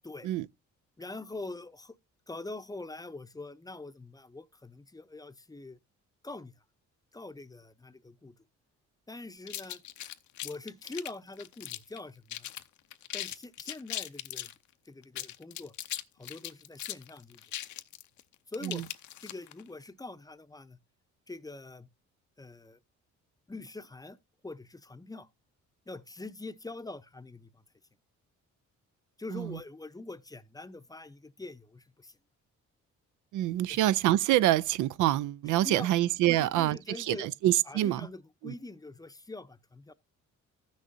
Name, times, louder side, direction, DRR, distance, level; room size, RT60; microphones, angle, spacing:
voice 1, 1.0-1.9 2.3-5.8 6.2-6.5 7.1-8.4 9.1-9.8 10.4-12.5 13.1-14.5 14.9-15.7 16.2-17.4 18.5-18.8 19.2-20.8 21.3-21.9 22.4-22.8 23.5-24.2 24.4-25.3 25.9-27.6 29.2-32.1 33.7-33.8 35.6-35.9 36.3-37.3 37.7-39.9, left 2 dB, 10° left, 0.6 m, -44 dB
sound 1, 9.5-12.0 12.3-12.6 12.9-14.5 15.0-19.6, left 13 dB, 75° left, 0.7 m, -39 dB
voice 2, 33.3-38.0 38.4-38.5, right 14 dB, 80° right, 0.5 m, -26 dB
14.5 x 6.4 x 2.6 m
cardioid pair, 90°, 30 cm